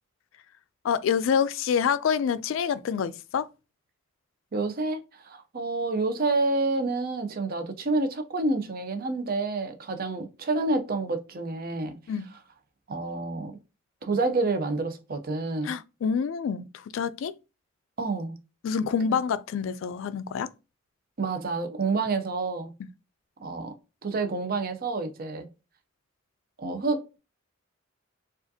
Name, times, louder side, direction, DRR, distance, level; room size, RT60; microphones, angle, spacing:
voice 1, 0.8-3.5 12.1-12.3 15.6-17.3 18.6-20.5 22.8-22.9, left 7 dB, 75° left, 0.3 m, -27 dB
voice 2, 4.5-12.0 12.9-13.6 14.0-15.7 18.0-18.4 19.1-19.2 21.2-22.7 23.4-23.7 24.0-25.5 26.6-27.2, right 3 dB, 50° right, 0.6 m, -28 dB
4.8 x 2.5 x 2.7 m
head